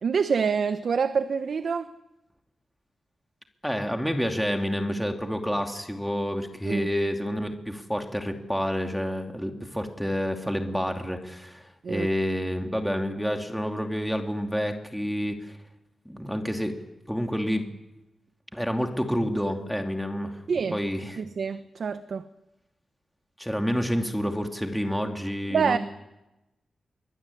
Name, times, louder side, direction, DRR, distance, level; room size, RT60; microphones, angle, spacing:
voice 1, 0.0-1.9 6.6-6.9 11.8-12.1 20.5-20.8 21.2-22.2 25.5-25.8, right 6 dB, 60° right, 1.1 m, -26 dB
voice 2, 3.6-15.6 16.0-16.7 17.1-17.7 18.5-20.4 20.7-21.2 23.4-25.8, equal, ahead, 2.8 m, -29 dB
23.5 x 21.0 x 9.9 m
wide cardioid pair, 125°, 0 cm